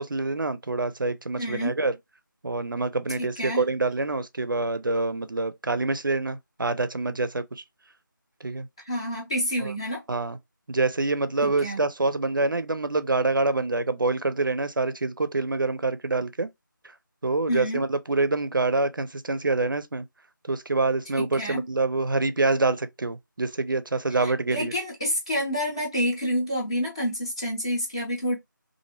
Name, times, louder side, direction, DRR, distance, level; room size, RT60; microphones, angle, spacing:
voice 1, 0.0-1.9 2.4-7.6 8.4-8.7 9.6-9.7 10.1-10.4 10.7-16.5 17.2-20.1 20.4-24.7, right 3 dB, 70° right, 0.5 m, -26 dB
voice 2, 1.4-1.8 3.2-3.6 8.9-10.0 11.4-11.8 17.5-17.8 21.2-21.6 24.2-28.4, equal, 15° left, 0.6 m, -28 dB
2.8 x 2.5 x 2.8 m
figure-of-eight pair, 165°, 11 cm